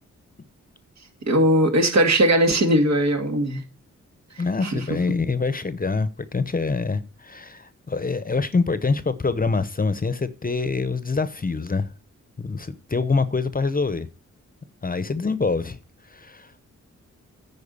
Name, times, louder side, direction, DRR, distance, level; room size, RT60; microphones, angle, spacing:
voice 1, 1.3-3.6 4.6-4.8, right 1 dB, 60° right, 2.3 m, -19 dB
voice 2, 4.4-11.9 12.4-14.1 14.8-15.8 16.1-16.5, left 4 dB, 30° left, 0.8 m, -25 dB
9.5 x 4.7 x 6.9 m
cardioid pair, 65°, 30 cm